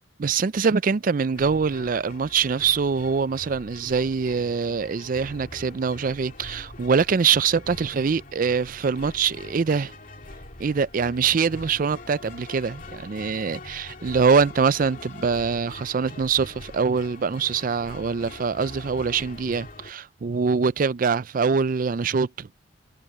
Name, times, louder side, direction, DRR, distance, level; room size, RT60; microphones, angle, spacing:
voice 1, 0.2-9.9 10.6-22.5, right 5 dB, 45° right, 0.4 m, -24 dB
sound 1, 1.3-19.9, left 2 dB, 45° left, 2.6 m, -43 dB
head